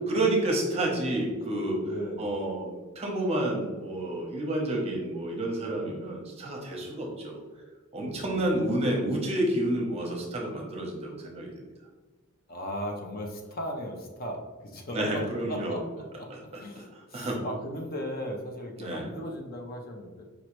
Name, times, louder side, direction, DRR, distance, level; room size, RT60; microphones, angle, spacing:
voice 1, 0.1-1.9 2.2-2.7 2.9-7.4 7.9-11.5 14.9-15.8 16.3-17.4 18.8-19.1, right 1 dB, 30° right, 0 dB, 0.8 m, -30 dB
voice 2, 1.8-2.2 8.0-8.6 12.5-15.2 15.5-16.3 16.6-20.2, equal, 45° left, 2 dB, 0.6 m, -37 dB
5.1 x 3.1 x 3.1 m, 1.3 s
head